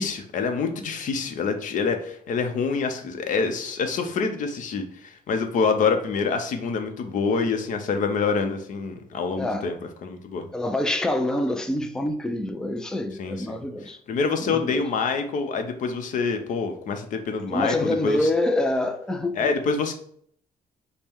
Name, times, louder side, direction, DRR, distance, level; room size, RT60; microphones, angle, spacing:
voice 1, 0.0-10.5 13.2-13.6 14.1-18.3 19.4-19.9, left 5 dB, 55° left, 0.7 m, -26 dB
voice 2, 9.4-9.7 10.5-14.0 14.4-14.8 17.5-19.5, left 1 dB, 5° left, 0.3 m, -26 dB
5.3 x 2.1 x 4.5 m
cardioid pair, 150°, 16 cm